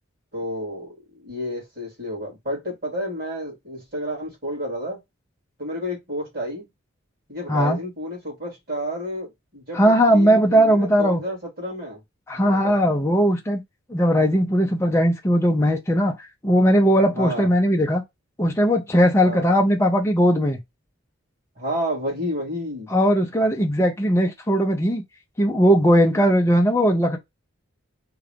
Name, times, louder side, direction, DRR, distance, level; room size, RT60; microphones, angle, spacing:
voice 1, 0.3-5.0 5.6-6.7 7.3-12.0 12.3-12.8 17.1-17.5 19.2-19.5 21.6-22.9, equal, 45° right, 2.3 m, -30 dB
voice 2, 9.7-11.2 12.3-13.6 13.9-16.1 16.4-18.0 18.4-20.6 22.9-25.0 25.4-27.2, equal, 15° left, 0.5 m, -18 dB
3.7 x 2.4 x 3.4 m
head